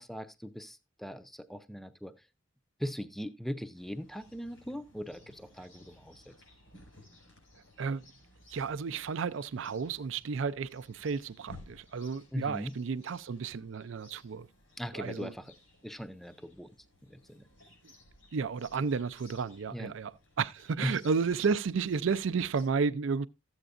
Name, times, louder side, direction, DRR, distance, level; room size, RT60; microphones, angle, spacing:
voice 1, 0.0-2.1 2.8-6.3 12.3-12.7 14.8-15.5 15.8-16.7 17.0-17.5 19.7-19.9 20.8-21.0, equal, ahead, 0.4 m, -39 dB
Chirp tweet, 3.7-22.7, left 1 dB, 90° left, 5.0 m, -58 dB
voice 2, 8.5-14.5 14.9-15.3 18.3-23.3, right 5 dB, 70° right, 0.4 m, -32 dB
13.5 x 8.0 x 2.5 m
head